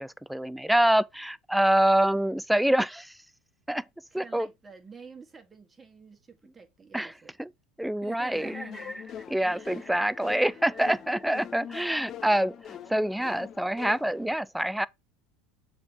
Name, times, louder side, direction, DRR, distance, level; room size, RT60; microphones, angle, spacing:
voice 1, 0.0-3.2 3.7-3.8 4.1-4.5 6.9-7.1 7.4-7.5 7.8-8.5 9.3-14.9, right 1 dB, 5° right, 0.3 m, -26 dB
voice 2, 4.1-7.3 8.0-9.1 9.4-9.9 10.3-11.0, right 5 dB, 20° right, 1.6 m, -48 dB
sound 1, 8.3-14.3, left 9 dB, 45° left, 0.7 m, -43 dB
6.7 x 3.7 x 4.2 m
hypercardioid pair, 95°, 0 cm